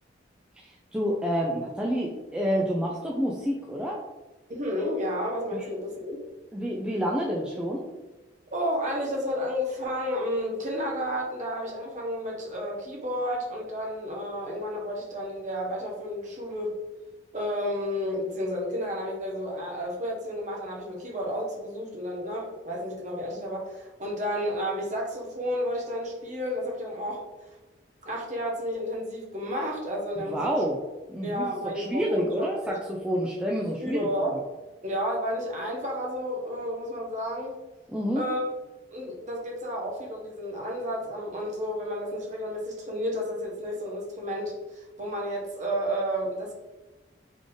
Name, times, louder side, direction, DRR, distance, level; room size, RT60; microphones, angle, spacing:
voice 1, 0.9-4.0 5.5-5.6 6.5-7.9 30.3-30.8 31.1-34.0 37.9-38.2, equal, 5° right, -3 dB, 0.4 m, -28 dB
voice 2, 4.5-6.2 8.5-16.8 17.3-27.2 28.0-30.6 31.2-32.8 33.8-34.3 34.8-37.5 38.1-38.4 38.9-46.5, equal, 40° right, -1 dB, 1.1 m, -31 dB
3.6 x 3.6 x 3.8 m, 1.1 s
head